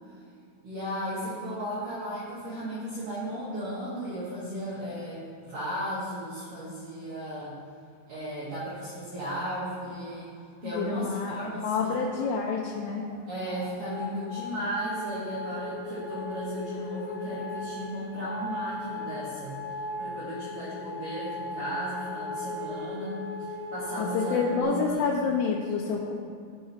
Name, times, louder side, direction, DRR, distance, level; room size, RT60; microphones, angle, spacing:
voice 1, 0.6-7.6 8.1-10.3 10.6-12.2 13.3-25.1, equal, 80° right, -9 dB, 1.9 m, -35 dB
voice 2, 10.6-11.4 11.6-13.1 24.0-26.1, left 5 dB, 85° left, -2 dB, 3.0 m, -28 dB
sound 1, 12.1-24.6, left 2 dB, 60° left, 1.8 m, -38 dB
13.5 x 4.7 x 2.9 m, 2.4 s
omnidirectional pair, 5.8 m